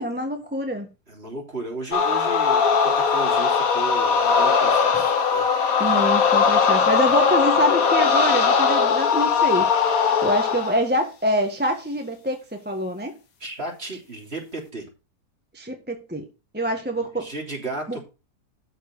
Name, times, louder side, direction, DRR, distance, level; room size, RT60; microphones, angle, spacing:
voice 1, 0.0-0.9 5.8-13.1 15.5-16.3 16.5-17.3 17.9-18.0, equal, 5° right, 1.4 m, -25 dB
voice 2, 1.1-5.5 5.8-6.1 13.4-14.9 17.0-18.0, right 2 dB, 35° right, 3.5 m, -35 dB
sound 1, 1.9-10.8, left 6 dB, 60° left, 1.7 m, -20 dB
12.5 x 4.7 x 6.2 m
omnidirectional pair, 1.7 m